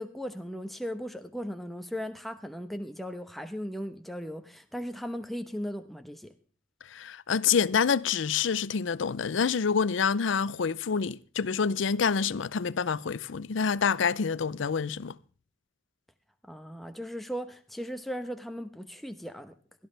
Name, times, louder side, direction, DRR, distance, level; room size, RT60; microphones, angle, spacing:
voice 1, 0.0-6.3 16.4-19.5, equal, ahead, 0.9 m, -37 dB
voice 2, 6.9-15.2, left 6 dB, 70° left, 0.5 m, -27 dB
17.0 x 13.0 x 3.3 m
head